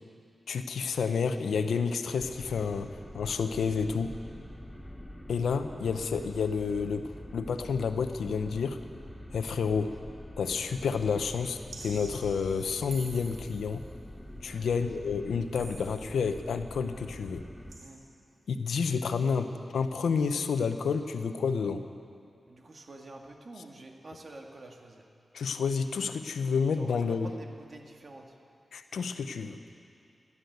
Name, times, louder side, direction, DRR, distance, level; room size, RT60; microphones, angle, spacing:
voice 1, 0.5-2.9 3.1-4.1 5.3-8.8 9.3-9.9 10.4-13.8 14.4-17.4 18.5-21.8 25.3-27.3 28.7-29.6, left 5 dB, 85° left, 9 dB, 0.7 m, -30 dB
sound 1, 2.2-17.8, left 1 dB, 10° left, 2.2 m, -46 dB
sound 2, 11.7-13.8 15.5-16.4 17.7-17.9, right 3 dB, 85° right, 2.5 m, -48 dB
voice 2, 22.4-25.0 26.8-28.3, right 2 dB, 55° right, 2 dB, 2.0 m, -48 dB
16.0 x 11.0 x 8.0 m, 2.6 s
cardioid pair, 50°, 0 cm